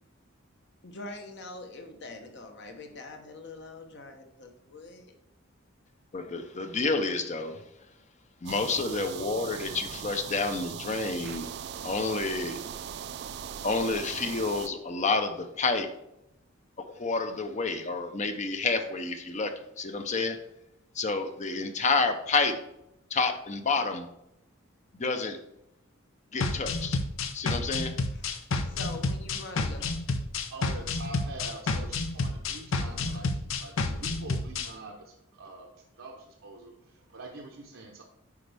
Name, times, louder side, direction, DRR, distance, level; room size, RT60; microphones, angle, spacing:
voice 1, 0.8-5.1 9.6-9.7 28.1-29.9, left 2 dB, 55° left, 1.0 m, -44 dB
voice 2, 6.1-7.6 8.4-11.5 11.8-12.6 13.6-15.9 17.0-19.5 19.8-20.4 21.0-22.6 23.1-24.1 24.9-25.4 26.3-27.0 27.3-27.9, left 3 dB, 35° left, 0.6 m, -29 dB
sound 1, 8.5-14.7, right 8 dB, 55° right, 0.3 m, -39 dB
sound 2, 26.4-34.7, left 3 dB, 75° left, 0.7 m, -30 dB
voice 3, 30.5-35.7 36.0-38.0, right 2 dB, 70° right, 0.8 m, -45 dB
8.3 x 5.2 x 3.4 m
head